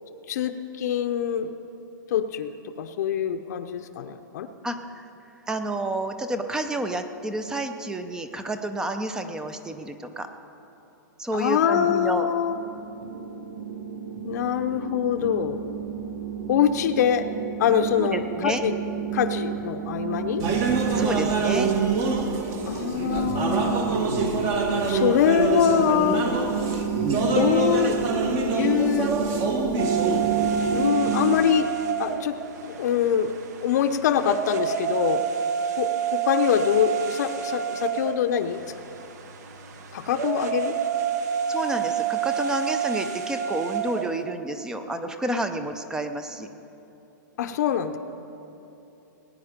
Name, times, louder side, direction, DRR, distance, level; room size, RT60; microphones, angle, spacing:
voice 1, 0.3-1.5 2.1-4.5 11.3-12.6 14.2-15.6 16.5-17.3 17.6-18.7 19.1-20.4 22.7-23.8 24.9-26.3 27.2-28.0 28.5-29.2 30.7-31.7 32.0-32.4 32.6-33.3 33.6-35.2 35.8-38.6 39.9-40.7 47.4-48.0, left 9 dB, 55° left, 7 dB, 0.7 m, -24 dB
voice 2, 4.6-5.0 5.5-10.3 11.2-12.3 18.0-18.6 21.0-21.7 41.5-46.5, right 1 dB, 5° right, 8 dB, 0.5 m, -30 dB
sound 1, 12.5-31.4, right 6 dB, 80° right, 1.2 m, -30 dB
sound 2, 20.4-30.9, right 4 dB, 25° right, 1.0 m, -26 dB
sound 3, 29.8-44.2, right 8 dB, 55° right, 1.1 m, -29 dB
19.5 x 9.6 x 5.1 m, 3.0 s
hypercardioid pair, 160°, 11 cm